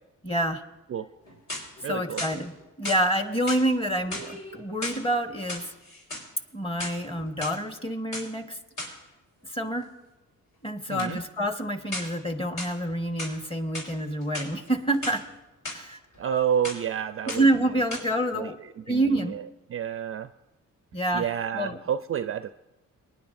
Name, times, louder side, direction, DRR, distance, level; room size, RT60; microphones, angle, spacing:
voice 1, 0.2-0.6 1.8-2.5 2.8-5.6 6.5-8.6 9.4-9.9 10.6-15.2 15.7-16.0 17.3-18.5 18.9-19.3 20.9-21.3 21.5-21.8, right 1 dB, 15° left, 6 dB, 1.3 m, -27 dB
sound 1, 1.2-1.8 2.2-3.0 3.5-3.7 4.0-5.0 5.4-6.3 6.7-7.5 8.1-8.3 8.8-9.0 11.0-11.2 11.9-12.2 12.6-13.4 13.7-13.9 14.2-15.2 15.6-15.8 16.1-16.4 16.6-16.9 17.3-17.6 17.9-18.0, left 1 dB, 65° left, 4.7 m, -36 dB
voice 2, 1.8-2.2 10.9-11.2 16.2-17.4 18.3-18.5 18.9-19.4 19.7-20.3 21.1-22.5, right 9 dB, 40° right, 12 dB, 0.4 m, -29 dB
23.5 x 10.0 x 2.6 m, 1.0 s
cardioid pair, 75°, 34 cm